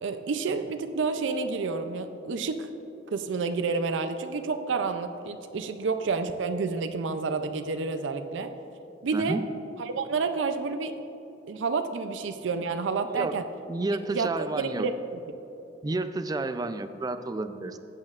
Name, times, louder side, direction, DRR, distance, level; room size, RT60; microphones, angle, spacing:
voice 1, 0.0-2.7 3.1-8.5 9.0-9.4 9.8-11.0 11.5-13.4 14.1-14.9, right 4 dB, 85° right, 7 dB, 0.5 m, -29 dB
voice 2, 13.7-14.9 15.8-17.8, right 2 dB, 20° right, 10 dB, 0.3 m, -31 dB
14.5 x 8.5 x 2.4 m, 3.0 s
head